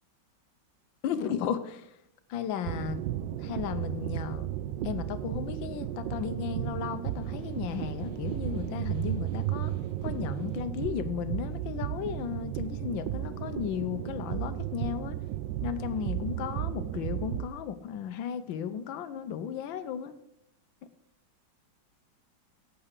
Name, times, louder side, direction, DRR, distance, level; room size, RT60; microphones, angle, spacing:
voice 1, 1.0-1.9 2.3-3.0 3.4-4.5 4.8-9.7 10.0-15.2 15.6-20.1, left 8 dB, 85° left, 11 dB, 1.5 m, -35 dB
sound 1, 2.6-17.5, right 12 dB, 75° right, 1.3 m, -34 dB
Snare drum, 6.9-10.7, equal, 40° right, 5.1 m, -57 dB
8.8 x 8.8 x 6.6 m, 0.79 s
omnidirectional pair, 2.0 m